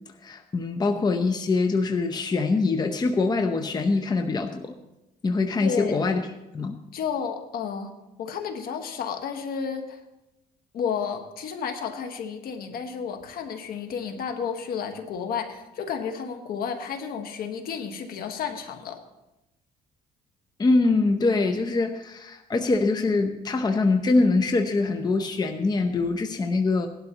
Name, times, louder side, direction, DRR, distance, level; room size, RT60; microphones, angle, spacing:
voice 1, 0.2-4.7 5.2-6.7 20.6-26.9, left 3 dB, 25° left, 6 dB, 0.8 m, -24 dB
voice 2, 5.6-6.0 6.9-7.9 8.2-10.0 10.7-19.0, left 7 dB, 65° left, 6 dB, 1.5 m, -32 dB
17.5 x 12.0 x 3.0 m, 0.95 s
cardioid pair, 110°, 17 cm